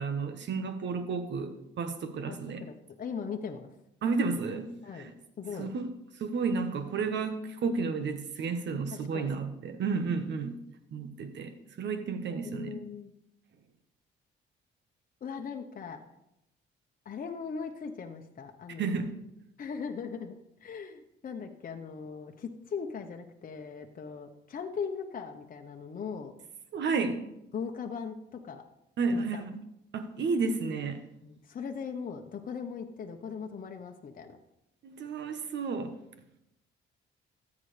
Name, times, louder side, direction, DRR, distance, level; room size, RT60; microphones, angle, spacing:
voice 1, 0.0-2.6 4.0-5.1 5.6-5.9 6.2-10.6 10.9-12.7 18.8-19.1 26.7-27.3 29.0-29.6 29.9-31.0 34.8-36.0, right 4 dB, 65° right, 8 dB, 1.2 m, -32 dB
voice 2, 2.3-3.7 4.8-5.1 5.4-5.7 8.9-9.4 12.3-13.1 15.2-16.0 17.0-19.0 19.6-20.3 20.6-26.4 27.5-28.6 29.1-29.4 31.2-34.3, left 6 dB, 45° left, 4 dB, 1.0 m, -39 dB
13.5 x 8.5 x 3.4 m, 0.85 s
cardioid pair, 90°, 20 cm